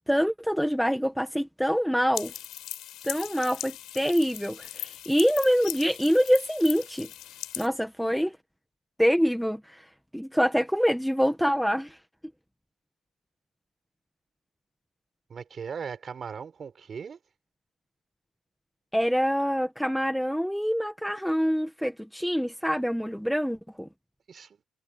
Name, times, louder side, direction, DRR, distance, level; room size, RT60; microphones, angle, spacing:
voice 1, 0.1-2.3 3.0-7.1 7.6-8.4 9.0-9.8 10.1-12.0 18.9-23.9, equal, ahead, 1.7 m, -25 dB
sound 1, 2.1-7.7, left 13 dB, 80° left, 5.7 m, -39 dB
voice 2, 15.3-17.2 24.3-24.6, right 6 dB, 40° right, 4.9 m, -38 dB
cardioid pair, 120°, 0 cm